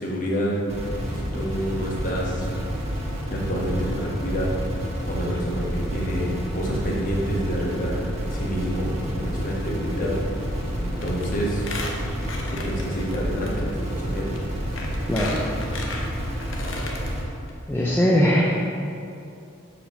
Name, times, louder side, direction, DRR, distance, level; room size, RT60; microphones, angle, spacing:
voice 1, 0.0-2.5 3.3-4.5 5.1-10.2 10.8-11.6 12.5-14.4, equal, 40° left, -4 dB, 1.2 m, -28 dB
sound 1, 0.7-17.2, equal, 30° right, 1.2 m, -29 dB
Squeak, 11.0-11.2 11.5-13.2 13.5-13.6 14.3-14.4 14.8-17.1 17.5-17.6 17.8-17.9, left 3 dB, 70° left, 0.9 m, -34 dB
voice 2, 17.7-18.4, equal, 10° left, -5 dB, 0.5 m, -20 dB
5.0 x 5.0 x 6.2 m, 2.5 s
head